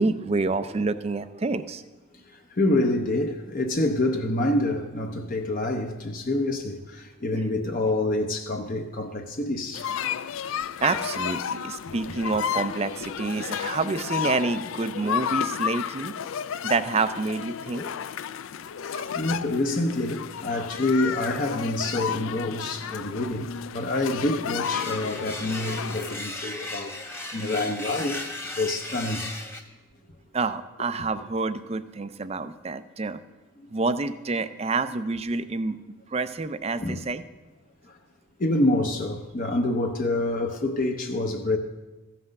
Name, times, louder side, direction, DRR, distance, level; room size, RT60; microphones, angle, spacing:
voice 1, 0.0-1.8 10.8-16.1 16.6-17.9 18.9-19.1 30.3-33.2 33.7-35.8 36.1-37.2, right 3 dB, 30° right, 0.4 m, -28 dB
voice 2, 2.3-9.9 12.2-12.3 17.7-18.0 19.1-28.3 28.6-29.3 33.6-33.7 36.8-37.1 37.8-38.0 38.4-41.6, left 2 dB, 40° left, 0.7 m, -27 dB
sound 1, 9.7-26.2, left 8 dB, 65° left, 0.3 m, -32 dB
sound 2, 24.6-29.6, left 2 dB, 10° left, 0.8 m, -36 dB
14.5 x 5.9 x 6.4 m
head